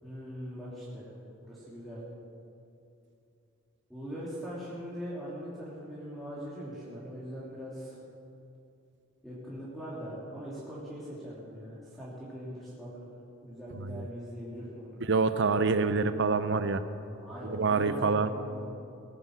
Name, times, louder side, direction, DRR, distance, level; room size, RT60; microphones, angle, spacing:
voice 1, 0.0-1.1 1.4-2.0 3.9-8.0 9.2-13.1 13.4-15.1 17.2-18.7, equal, ahead, -9 dB, 2.9 m, -41 dB
voice 2, 15.0-16.8 17.4-18.3, right 4 dB, 60° right, 11 dB, 0.7 m, -26 dB
19.5 x 9.9 x 6.5 m, 2.7 s
head